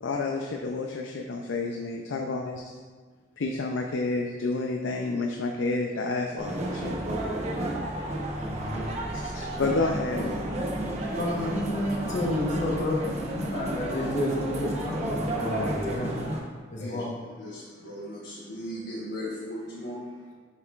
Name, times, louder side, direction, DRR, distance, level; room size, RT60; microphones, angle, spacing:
voice 1, 0.0-2.6 3.4-7.0 9.1-10.5, left 3 dB, 85° left, 2 dB, 0.5 m, -30 dB
sound 1, 6.4-16.4, right 1 dB, 35° right, 0.8 m, -32 dB
voice 2, 8.4-8.9 11.2-16.3 16.7-17.1, left 1 dB, 40° left, -3 dB, 0.9 m, -30 dB
voice 3, 17.4-20.3, equal, 65° left, -6 dB, 1.1 m, -37 dB
7.0 x 6.4 x 2.4 m, 1.5 s
head